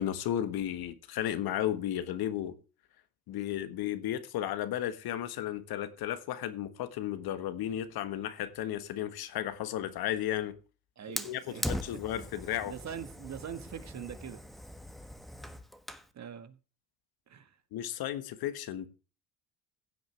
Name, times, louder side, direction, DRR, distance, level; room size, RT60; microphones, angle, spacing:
voice 1, 0.0-2.5 3.3-10.6 11.2-12.7 17.7-18.9, left 11 dB, 60° left, 1.5 m, -34 dB
voice 2, 11.0-11.7 12.1-14.4 16.1-16.6 17.3-17.6, right 8 dB, 40° right, 1.7 m, -43 dB
Fire, 11.2-16.1, equal, ahead, 1.3 m, -40 dB
16.0 x 7.9 x 3.4 m
supercardioid pair, 80°, 42 cm